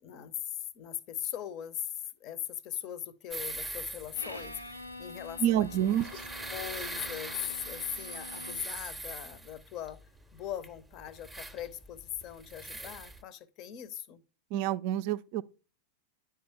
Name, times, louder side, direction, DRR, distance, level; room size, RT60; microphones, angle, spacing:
voice 1, 0.0-6.0 6.5-7.3 7.6-10.0 10.3-14.2, left 11 dB, 40° left, 0.6 m, -40 dB
sound 1, 3.3-13.2, right 1 dB, 5° right, 0.7 m, -42 dB
Bowed string instrument, 4.1-8.8, left 2 dB, 85° left, 0.5 m, -46 dB
voice 2, 5.4-6.1 14.5-15.4, right 11 dB, 45° right, 0.4 m, -28 dB
10.0 x 4.6 x 3.4 m
figure-of-eight pair, 90°, 0 cm